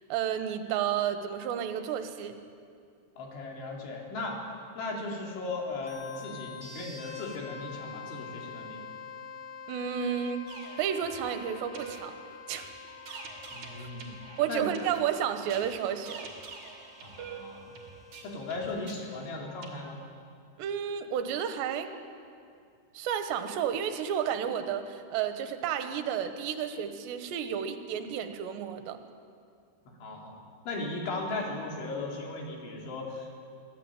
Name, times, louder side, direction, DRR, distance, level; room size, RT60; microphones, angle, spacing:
voice 1, 0.1-2.4 9.7-10.5 10.8-12.2 12.5-12.7 13.1-13.2 14.4-16.3 20.6-21.9 22.9-29.0, right 9 dB, 75° right, 8 dB, 3.4 m, -31 dB
voice 2, 3.2-4.4 4.8-8.8 13.5-14.1 14.5-14.7 17.0-17.7 18.2-20.0 29.9-30.4 30.7-33.3, left 2 dB, 85° left, -1 dB, 6.2 m, -37 dB
sound 1, 5.8-19.2, left 5 dB, 10° left, 2.8 m, -46 dB
sound 2, 10.5-19.7, right 5 dB, 45° right, 3.5 m, -46 dB
24.5 x 17.0 x 9.1 m, 2.4 s
omnidirectional pair, 5.3 m